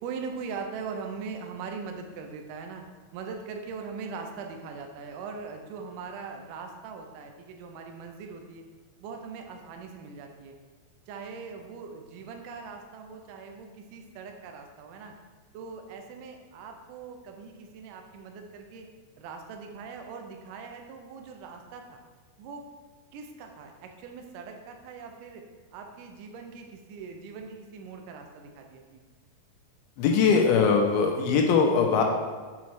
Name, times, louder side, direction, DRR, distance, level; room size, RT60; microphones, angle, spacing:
voice 1, 0.0-2.8 3.1-8.6 9.0-10.6 11.1-15.1 15.5-18.9 19.2-22.0 22.4-22.6 23.1-25.4 25.7-29.0, right 5 dB, 85° right, 3 dB, 1.8 m, -41 dB
voice 2, 30.0-32.0, left 5 dB, 85° left, 2 dB, 2.4 m, -21 dB
7.1 x 4.2 x 3.1 m, 1.5 s
omnidirectional pair, 4.4 m